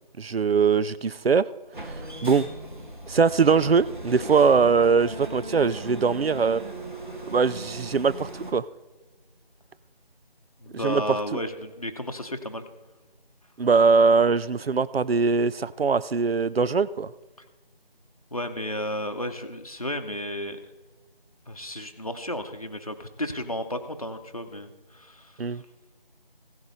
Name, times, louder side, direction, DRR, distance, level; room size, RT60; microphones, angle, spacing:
voice 1, 0.2-1.5 1.8-2.5 3.1-6.6 7.3-8.7 10.8-11.0 13.6-17.1 25.4-25.6, right 5 dB, 90° right, 17 dB, 0.5 m, -22 dB
sound 1, 1.7-8.5, right 1 dB, 55° right, 1.6 m, -38 dB
voice 2, 10.6-12.7 18.3-20.6 21.5-25.6, left 1 dB, 40° left, 6 dB, 0.8 m, -33 dB
16.0 x 6.6 x 5.5 m, 1.2 s
figure-of-eight pair, 170°, 29 cm